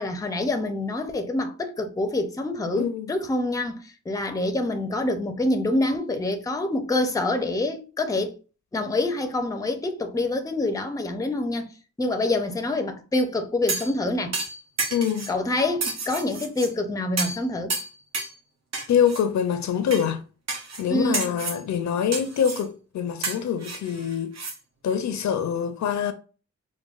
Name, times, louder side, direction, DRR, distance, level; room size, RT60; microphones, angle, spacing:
voice 1, 0.0-8.3 8.7-11.7 12.0-14.4 15.3-17.7 20.9-21.4, left 2 dB, 10° left, 0.4 m, -26 dB
voice 2, 2.7-3.1 14.9-15.3 18.9-20.2 20.8-24.4 24.8-26.1, left 8 dB, 70° left, 0.5 m, -25 dB
sound 1, 13.7-14.0 14.3-15.3 15.8-16.7 17.2-17.4 17.7-18.4 18.7-19.2 19.9-20.1 20.5-20.8 21.1-21.6 22.1-22.7 23.2-24.6 24.9-25.0, right 3 dB, 60° right, 0.8 m, -30 dB
4.8 x 2.2 x 2.3 m
wide cardioid pair, 125°, 29 cm